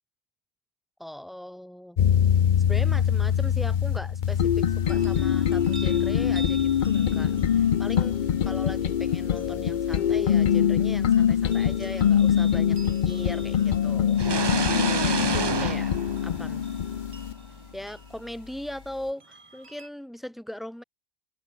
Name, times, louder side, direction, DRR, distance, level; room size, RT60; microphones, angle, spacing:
voice 1, 1.0-2.0 2.7-15.9 16.2-16.7 17.7-20.8, left 1 dB, ahead, 2.2 m, -39 dB
sound 1, 2.0-17.3, left 9 dB, 50° left, 0.7 m, -23 dB
sound 2, 4.8-19.9, right 3 dB, 60° right, 3.4 m, -49 dB
sound 3, 14.2-17.0, right 5 dB, 30° right, 0.5 m, -29 dB
omnidirectional pair, 1.2 m